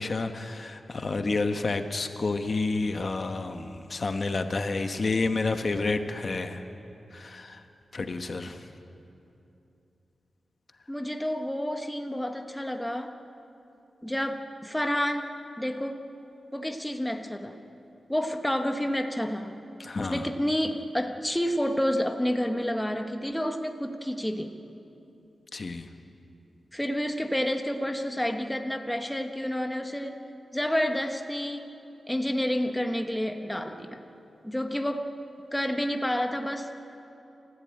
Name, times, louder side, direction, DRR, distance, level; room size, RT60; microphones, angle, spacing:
voice 1, 0.0-6.6 7.1-7.6 7.9-8.7 19.8-20.3 25.5-25.9, left 3 dB, 40° left, 7 dB, 1.1 m, -30 dB
voice 2, 10.9-13.1 14.0-16.0 16.5-17.6 18.1-19.5 20.0-24.6 26.7-30.2 30.5-31.7 32.1-34.0 34.4-35.1 35.5-36.7, equal, 5° left, 5 dB, 1.1 m, -29 dB
28.5 x 14.5 x 8.8 m, 2.8 s
wide cardioid pair, 155°, 0 cm